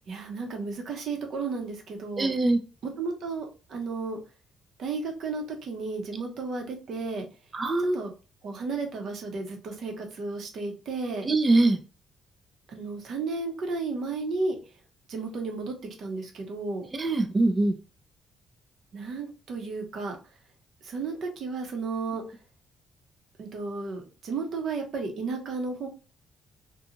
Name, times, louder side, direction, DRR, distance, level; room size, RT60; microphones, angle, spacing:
voice 1, 0.1-2.3 3.0-4.2 4.8-7.3 7.9-8.1 8.4-11.3 12.7-14.6 15.1-16.9 18.9-20.2 20.8-22.2 23.4-25.9, right 4 dB, 65° right, 3 dB, 0.8 m, -33 dB
voice 2, 2.2-2.6 7.5-8.0 11.2-11.8 16.9-17.8, right 2 dB, 30° right, 7 dB, 0.4 m, -23 dB
2.6 x 2.3 x 2.8 m, 0.34 s
cardioid pair, 90°, 0 cm